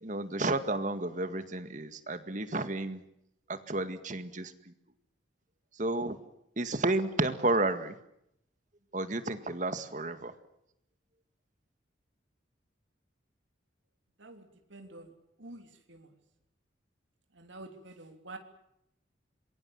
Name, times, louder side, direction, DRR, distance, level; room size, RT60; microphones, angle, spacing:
voice 1, 0.0-3.0 3.5-4.5 5.8-6.2 6.6-8.0 8.9-10.3, right 2 dB, 40° right, 10 dB, 1.9 m, -31 dB
voice 2, 14.2-15.1 15.4-16.1 17.3-18.4, right 2 dB, 80° right, 4 dB, 3.4 m, -48 dB
27.0 x 23.0 x 7.3 m, 0.78 s
head